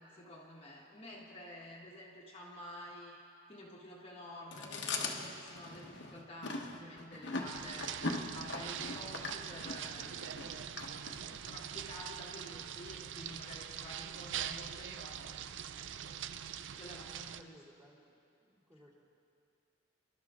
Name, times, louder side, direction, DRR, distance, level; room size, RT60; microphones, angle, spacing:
voice 1, 0.0-3.2 3.5-7.9 8.3-10.4 11.5-16.0 16.7-17.6, left 1 dB, 30° left, -4 dB, 1.4 m, -50 dB
Chewing mastication, 4.5-11.5, left 3 dB, 55° left, 1.2 m, -40 dB
sound 1, 7.5-17.4, right 9 dB, 60° right, 0.4 m, -43 dB
voice 2, 17.3-18.9, equal, 15° right, -6 dB, 2.7 m, -61 dB
25.5 x 12.5 x 3.7 m, 2.5 s
head